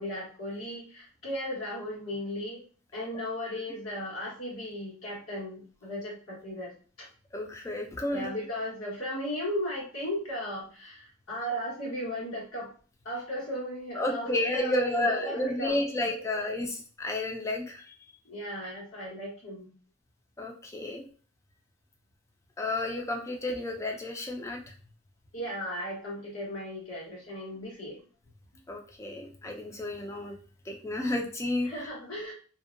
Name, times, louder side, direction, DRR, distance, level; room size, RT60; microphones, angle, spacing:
voice 1, 0.0-2.6 2.9-7.1 8.1-12.7 13.0-16.4 18.2-19.7 25.3-28.1 31.6-32.3, equal, 85° left, -5 dB, 1.3 m, -36 dB
voice 2, 7.3-8.3 14.0-17.9 20.4-21.0 22.6-24.6 28.7-30.3 30.7-31.7, left 2 dB, 15° left, 2 dB, 0.3 m, -31 dB
2.6 x 2.1 x 2.5 m, 0.40 s
head